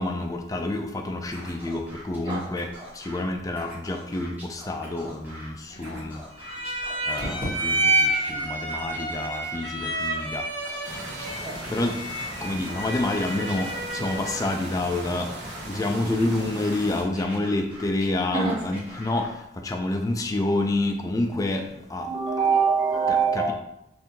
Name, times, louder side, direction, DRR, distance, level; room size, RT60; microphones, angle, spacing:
voice 1, 0.0-2.7 3.0-6.2 7.1-10.4 11.7-12.0 12.4-13.7 13.9-15.3 15.7-19.2 19.6-21.6 21.9-22.1 23.1-23.5, left 2 dB, 20° left, 3 dB, 0.4 m, -28 dB
Scratching (performance technique), 1.3-3.2 3.5-5.5 5.8-7.8 8.1-10.2 10.6-12.3 12.6-14.5 14.9-16.8 17.1-19.3, equal, 10° right, 0.9 m, -44 dB
voice 2, 5.7-6.0 11.4-11.6 18.3-18.5 22.0-23.5, right 5 dB, 30° right, -7 dB, 1.4 m, -24 dB
sound 1, 6.4-14.5, right 1 dB, 90° right, 1.4 m, -29 dB
sound 2, 10.8-17.0, right 1 dB, 70° right, 0.8 m, -38 dB
3.6 x 2.6 x 2.8 m, 0.81 s
head